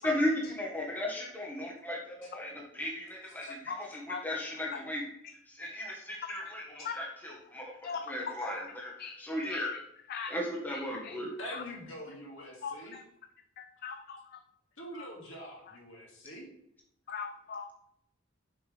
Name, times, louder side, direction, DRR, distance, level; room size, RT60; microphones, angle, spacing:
voice 1, 0.0-5.0 5.5-9.7 10.3-11.3, left 1 dB, 10° left, -2 dB, 1.4 m, -36 dB
voice 2, 3.5-3.8 4.1-4.2 4.7-4.8 5.6-6.0 6.3-6.4 6.8-6.9 7.8-8.0 9.0-9.2 9.5-9.8 10.1-10.3 10.7-11.2 11.5-11.6 12.6-13.0 13.6-14.4 14.9-15.1 17.1-17.7, left 6 dB, 45° left, 7 dB, 0.4 m, -40 dB
voice 3, 11.4-13.0 14.8-16.5, equal, 65° left, -2 dB, 2.4 m, -44 dB
6.5 x 5.8 x 3.4 m, 0.75 s
head